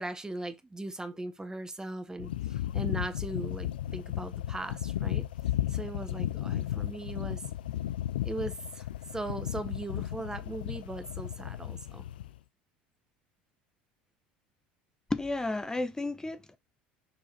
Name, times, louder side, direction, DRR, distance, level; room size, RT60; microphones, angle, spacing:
voice 1, 0.0-5.2 5.7-7.4 8.2-8.9 9.1-12.0, right 2 dB, 15° right, 1.2 m, -39 dB
sound 1, 2.2-12.4, left 13 dB, 80° left, 0.5 m, -34 dB
voice 2, 15.1-16.6, left 2 dB, 10° left, 1.1 m, -32 dB
6.7 x 4.8 x 4.0 m
hypercardioid pair, 70°, 5 cm